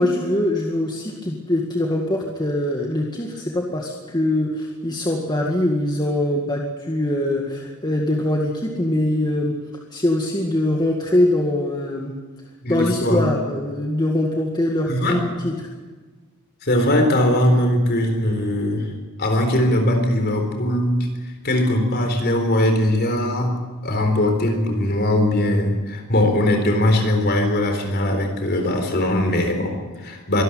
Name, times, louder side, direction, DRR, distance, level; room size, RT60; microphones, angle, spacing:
voice 1, 0.0-9.5 9.9-12.1 12.7-15.6, left 1 dB, 20° left, 0 dB, 2.0 m, -22 dB
voice 2, 12.6-13.2 14.9-15.2 16.6-18.9 19.2-21.1 21.4-23.6 23.8-30.4, left 1 dB, 45° left, 4 dB, 4.1 m, -20 dB
24.0 x 13.0 x 9.3 m, 1.3 s
head